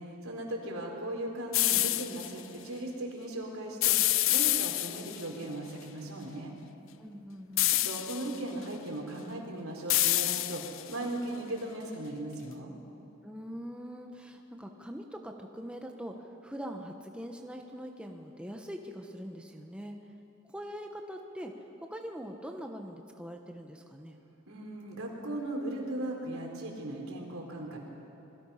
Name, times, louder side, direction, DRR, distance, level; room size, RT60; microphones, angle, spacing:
voice 1, 0.0-6.5 7.8-10.6 10.9-12.7 24.5-27.8, right 1 dB, 90° right, 0 dB, 4.3 m, -38 dB
sound 1, 1.5-2.3 3.8-5.2 7.6-8.4 9.9-10.9, left 16 dB, 70° left, 0.6 m, -27 dB
voice 2, 7.0-7.8 13.2-20.0 20.5-21.5 21.9-24.2, equal, 5° right, 3 dB, 1.1 m, -42 dB
27.0 x 21.5 x 5.8 m, 2.9 s
head